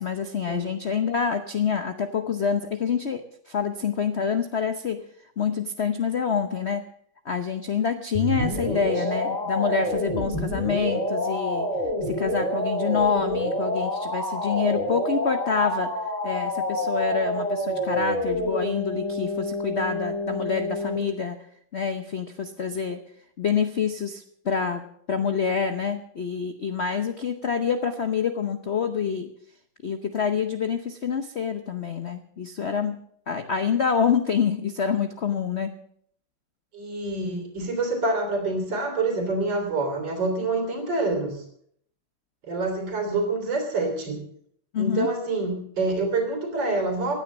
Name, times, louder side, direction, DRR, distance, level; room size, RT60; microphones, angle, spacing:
voice 1, 0.0-5.0 5.4-6.8 7.2-11.7 12.0-21.4 21.7-23.0 23.4-29.3 29.8-33.0 33.3-35.8 44.7-45.1, left 6 dB, 50° left, 8 dB, 0.8 m, -27 dB
sound 1, 8.1-21.0, left 1 dB, 20° left, 3.7 m, -28 dB
voice 2, 8.6-9.0 36.7-41.4 42.4-44.2 44.8-47.1, right 2 dB, 60° right, 4 dB, 3.9 m, -27 dB
16.0 x 9.8 x 7.3 m, 0.66 s
omnidirectional pair, 2.2 m